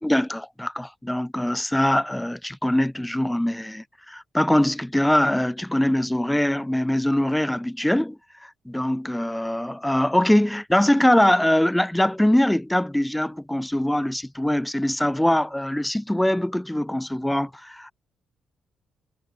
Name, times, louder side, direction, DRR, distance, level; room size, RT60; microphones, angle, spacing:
voice 1, 0.0-17.9, left 1 dB, 5° left, 2.8 m, -22 dB
cardioid pair, 175°, 0 cm